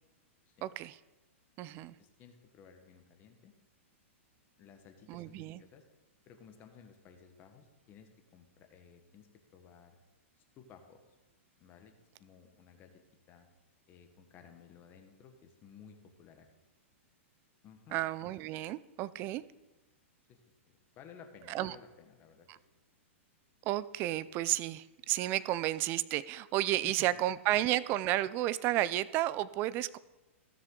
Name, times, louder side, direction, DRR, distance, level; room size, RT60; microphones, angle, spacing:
voice 1, 0.6-1.0 1.6-1.9 5.1-5.6 17.9-19.4 21.5-21.8 22.5-22.6 23.6-30.0, right 14 dB, 30° right, 17 dB, 0.4 m, -32 dB
voice 2, 1.7-3.5 4.6-5.8 6.3-10.0 10.6-11.1 11.6-11.9 12.2-13.0 13.3-13.5 13.9-16.5 17.6-18.0 20.3-22.6 26.7-27.1, left 7 dB, 30° left, 5 dB, 1.2 m, -57 dB
16.0 x 6.5 x 3.8 m, 1.1 s
hypercardioid pair, 145°, 7 cm